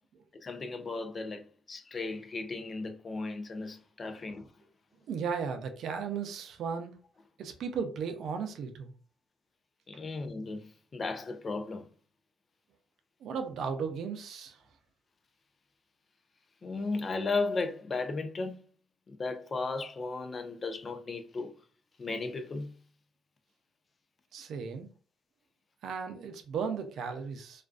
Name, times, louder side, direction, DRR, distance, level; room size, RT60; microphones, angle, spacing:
voice 1, 0.4-4.5 9.9-11.8 16.6-18.6 19.1-21.5 22.0-22.7, left 3 dB, 40° left, 0.4 m, -35 dB
voice 2, 5.1-7.0 7.4-8.9 13.2-14.6 24.3-24.9 25.8-27.6, right 6 dB, 75° right, 0.5 m, -35 dB
2.4 x 2.3 x 2.4 m
cardioid pair, 90°, 0 cm